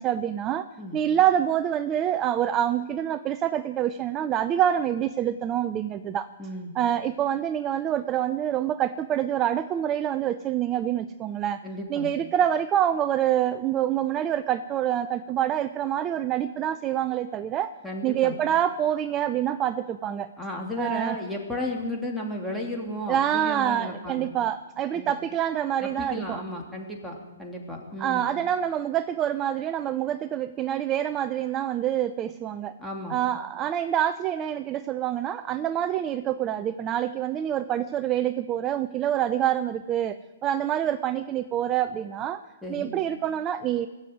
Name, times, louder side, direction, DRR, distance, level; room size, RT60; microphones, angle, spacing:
voice 1, 0.0-0.7 0.9-6.3 6.8-11.6 11.9-17.7 18.0-20.3 20.8-21.2 23.1-26.4 28.0-32.7 33.1-40.2 40.4-42.4 42.7-43.9, right 10 dB, 25° right, 12 dB, 0.5 m, -26 dB
voice 2, 6.4-6.7 11.6-12.1 17.8-18.3 20.4-24.3 24.9-25.1 25.8-28.3 32.8-33.2 42.6-42.9, left 1 dB, ahead, -2 dB, 3.0 m, -34 dB
19.5 x 7.8 x 9.3 m, 1.2 s
hypercardioid pair, 130°, 0 cm